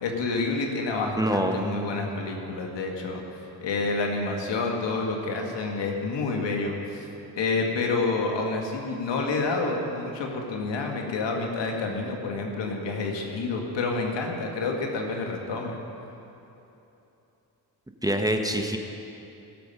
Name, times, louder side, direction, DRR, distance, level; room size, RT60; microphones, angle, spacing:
voice 1, 0.0-3.2 3.6-7.1 7.4-15.8, left 3 dB, 75° left, 1 dB, 1.9 m, -28 dB
voice 2, 1.2-2.0 18.0-18.8, right 1 dB, 10° right, 4 dB, 1.1 m, -26 dB
17.5 x 7.6 x 5.5 m, 3.0 s
supercardioid pair, 60°, 43 cm